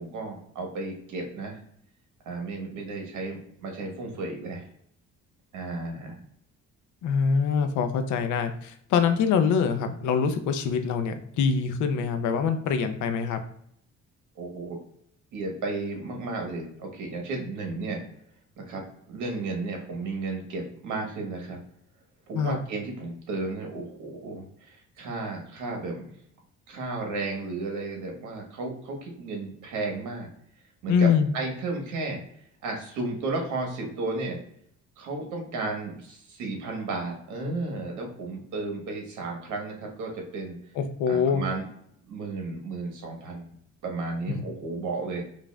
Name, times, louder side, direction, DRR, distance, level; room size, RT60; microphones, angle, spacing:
voice 1, 0.0-1.6 2.2-4.7 5.5-6.2 14.3-14.8 15.3-18.0 18.6-18.8 19.1-21.6 22.3-26.1 26.7-30.3 30.8-32.2 32.6-34.4 35.0-40.5 41.1-41.6 42.1-43.6 43.8-45.3, right 3 dB, 80° right, 1 dB, 1.2 m, -33 dB
voice 2, 7.0-13.4 22.3-22.6 30.9-31.3 40.8-41.4 44.3-44.4, left 6 dB, 80° left, 8 dB, 0.6 m, -24 dB
5.2 x 2.5 x 2.2 m, 0.69 s
cardioid pair, 125°, 29 cm